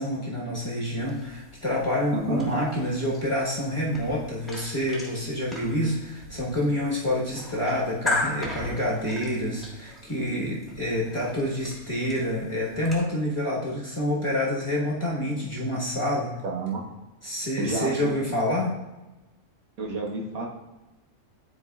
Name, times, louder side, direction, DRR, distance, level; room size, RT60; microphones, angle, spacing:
voice 1, 0.0-16.3 17.2-18.8, left 1 dB, 20° left, -5 dB, 1.2 m, -27 dB
sound 1, 1.0-13.0, left 2 dB, ahead, 1.4 m, -37 dB
voice 2, 2.1-2.5 16.4-16.8 17.6-18.4 19.8-20.5, right 3 dB, 70° right, -2 dB, 1.5 m, -30 dB
10.5 x 4.6 x 2.4 m, 1.1 s
omnidirectional pair, 1.6 m